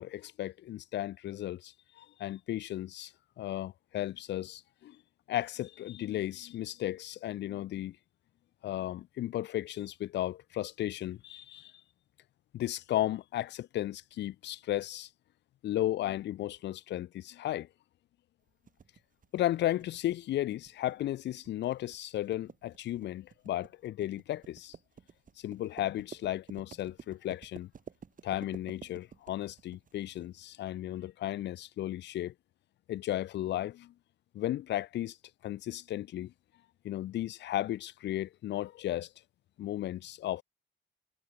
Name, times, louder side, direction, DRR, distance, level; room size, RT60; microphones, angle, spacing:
voice 1, 0.0-3.1 3.4-5.0 5.3-8.0 8.6-11.7 12.5-15.1 15.6-17.7 19.3-24.7 25.4-27.7 28.2-32.3 32.9-33.9 34.3-35.2 35.4-36.3 36.8-39.1 39.6-40.4, left 13 dB, 60° left, 0.5 m, -35 dB
sound 1, 18.7-30.2, right 6 dB, 40° right, 2.1 m, -52 dB
cardioid pair, 90°, 20 cm